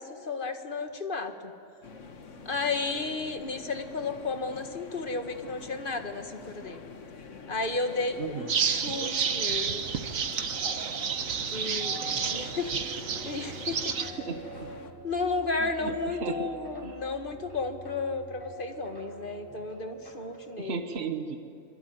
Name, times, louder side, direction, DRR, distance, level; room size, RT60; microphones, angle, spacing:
voice 1, 0.0-1.5 2.5-6.8 7.5-9.8 11.5-14.2 15.0-20.8, left 3 dB, 40° left, 7 dB, 1.8 m, -33 dB
sound 1, 1.8-14.9, left 4 dB, 65° left, 1.8 m, -46 dB
voice 2, 8.2-8.5 11.7-11.9 14.2-14.7 15.6-16.5 16.8-17.0 20.6-21.4, right 5 dB, 55° right, 7 dB, 1.5 m, -36 dB
sound 2, 8.5-14.1, right 6 dB, 85° right, 1.6 m, -30 dB
sound 3, 11.8-20.6, right 1 dB, 15° left, 5.5 m, -46 dB
26.5 x 23.0 x 9.4 m, 2.5 s
omnidirectional pair, 1.4 m